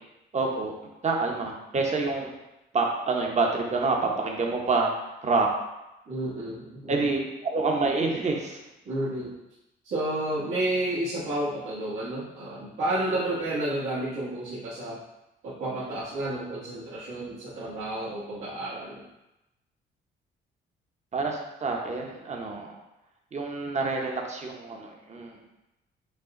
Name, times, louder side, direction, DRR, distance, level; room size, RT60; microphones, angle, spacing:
voice 1, 0.3-0.7 1.0-2.3 2.7-4.9 5.2-5.5 6.9-8.6 21.1-22.7 23.3-25.4, right 3 dB, 35° right, 1 dB, 0.9 m, -27 dB
voice 2, 6.1-7.0 8.8-9.3 9.8-15.0 15.4-19.0, right 1 dB, 80° right, -11 dB, 1.5 m, -31 dB
5.5 x 2.4 x 3.7 m, 0.93 s
cardioid pair, 90°, 20 cm